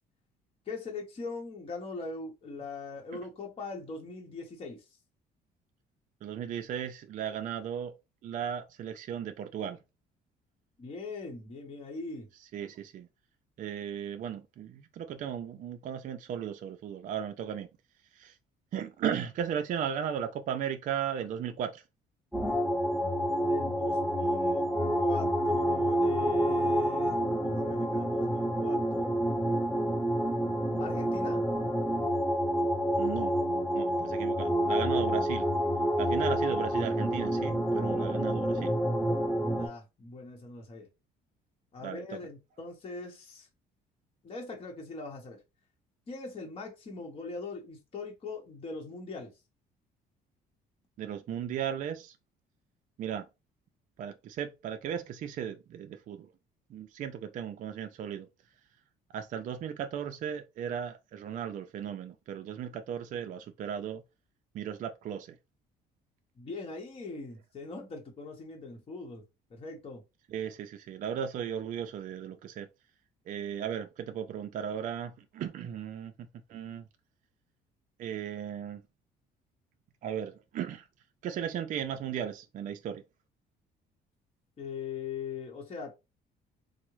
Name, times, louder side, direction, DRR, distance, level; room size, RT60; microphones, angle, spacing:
voice 1, 0.7-4.8 10.8-12.3 23.4-24.6 25.0-29.2 30.8-31.4 39.6-40.9 41.7-43.5 44.2-45.4 46.1-49.3 66.4-69.2 69.5-70.0 84.6-85.9, left 4 dB, 35° left, 0.8 m, -41 dB
voice 2, 6.2-7.9 8.2-9.8 12.4-13.1 13.6-17.7 18.1-18.4 18.7-21.8 33.0-33.4 33.7-35.5 36.0-38.7 41.8-42.2 51.0-52.2 53.0-53.3 54.0-56.3 56.7-58.3 59.1-64.0 64.5-65.4 70.3-72.7 73.3-76.8 78.0-78.8 80.0-80.9 81.2-83.0, right 8 dB, 50° right, 0.4 m, -36 dB
sound 1, 22.3-39.7, equal, ahead, 0.8 m, -28 dB
3.5 x 2.0 x 3.1 m
cardioid pair, 110°, 17 cm